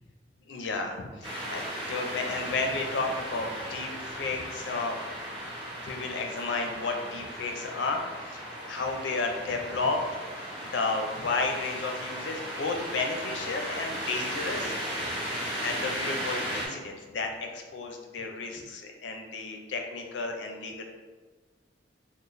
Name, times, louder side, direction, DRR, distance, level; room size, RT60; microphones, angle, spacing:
voice 1, 0.4-5.0 5.8-10.1 10.6-14.7 15.1-15.2 15.6-20.8, left 3 dB, 75° left, 3 dB, 0.5 m, -32 dB
sound 1, 1.2-16.7, equal, 30° right, 0.9 m, -36 dB
3.9 x 2.1 x 3.1 m, 1.3 s
head